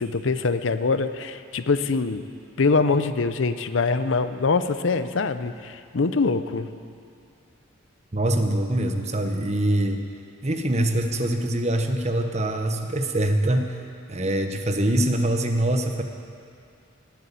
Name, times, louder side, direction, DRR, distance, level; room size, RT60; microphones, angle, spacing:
voice 1, 0.0-2.2 2.6-6.7, left 4 dB, 70° left, 11 dB, 0.6 m, -23 dB
voice 2, 8.1-10.0 10.4-13.8 14.1-16.0, right 1 dB, 35° right, 5 dB, 1.1 m, -24 dB
18.0 x 8.3 x 8.4 m, 2.4 s
head